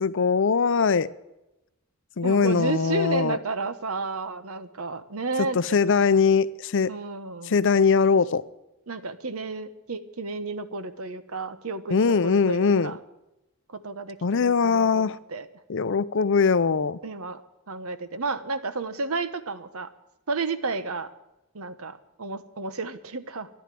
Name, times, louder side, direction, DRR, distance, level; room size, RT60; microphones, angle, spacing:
voice 1, 0.0-1.1 2.2-3.4 5.4-6.9 7.4-8.4 11.9-12.9 14.2-15.2 15.7-17.0, left 5 dB, 55° left, 16 dB, 0.6 m, -21 dB
voice 2, 2.2-5.6 6.9-7.6 8.9-13.0 13.7-15.5 17.0-17.4 17.7-19.9 20.3-21.1 21.5-23.5, right 3 dB, 70° right, 12 dB, 1.1 m, -32 dB
13.5 x 11.5 x 7.6 m, 0.94 s
head